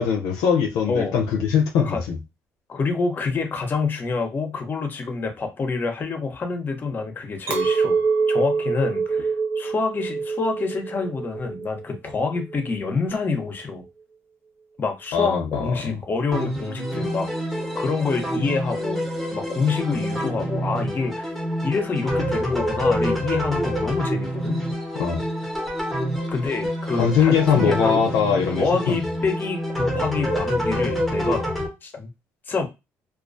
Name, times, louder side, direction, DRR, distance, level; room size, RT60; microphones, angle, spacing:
voice 1, 0.0-2.2 15.1-16.0 24.9-25.2 27.0-29.0, left 7 dB, 85° left, 0.5 m, -21 dB
voice 2, 0.9-1.2 1.8-2.0 2.7-8.0 8.3-13.8 14.8-17.3 17.7-19.0 19.3-21.3 21.6-24.6 26.3-28.1 28.6-31.4 31.8-32.1 32.5-32.7, left 4 dB, 35° left, 0.7 m, -27 dB
Chink clink, 7.5-12.8, right 5 dB, 50° right, 0.7 m, -25 dB
sound 1, 16.3-31.7, equal, 5° left, 0.9 m, -27 dB
2.3 x 2.2 x 2.5 m
cardioid pair, 100°, 6 cm